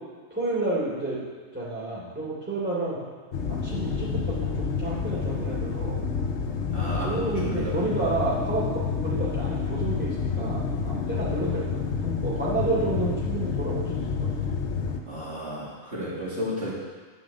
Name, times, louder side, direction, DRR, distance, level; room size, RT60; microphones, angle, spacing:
voice 1, 0.3-1.2 1.5-3.0 3.5-6.0 7.0-8.7 9.0-14.3, right 2 dB, 10° right, -7 dB, 3.4 m, -30 dB
sound 1, 3.3-15.0, left 5 dB, 60° left, 1.2 m, -29 dB
voice 2, 6.7-8.1 15.1-16.7, equal, 55° right, -8 dB, 2.7 m, -33 dB
11.0 x 5.9 x 7.5 m, 1.5 s
omnidirectional pair, 1.3 m